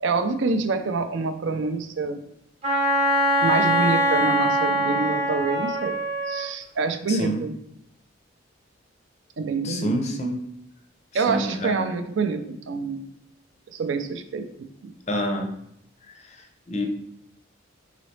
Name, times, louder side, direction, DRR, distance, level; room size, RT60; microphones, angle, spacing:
voice 1, 0.0-2.2 3.4-6.0 6.3-7.5 9.4-10.2 11.1-13.1 13.7-14.5 14.8-14.9, right 4 dB, 60° right, 9 dB, 0.4 m, -26 dB
Wind instrument woodwind instrument, 2.6-6.5, right 1 dB, 30° right, 0.7 m, -22 dB
voice 2, 7.1-7.4 9.6-10.4 11.3-11.9 15.1-15.5 16.7-16.9, equal, 30° left, 4 dB, 0.5 m, -27 dB
4.0 x 3.8 x 3.2 m, 0.76 s
head